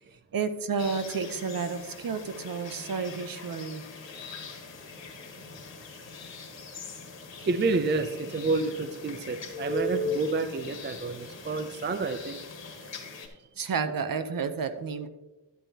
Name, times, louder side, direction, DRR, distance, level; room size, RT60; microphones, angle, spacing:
voice 1, 0.3-3.8 13.6-15.1, right 5 dB, 50° right, 10 dB, 0.7 m, -31 dB
sound 1, 0.8-13.3, left 3 dB, 70° left, 1.7 m, -40 dB
voice 2, 7.4-12.4, right 3 dB, 25° right, 10 dB, 0.4 m, -29 dB
11.5 x 8.9 x 2.8 m, 1.1 s
wide cardioid pair, 150°, 45 cm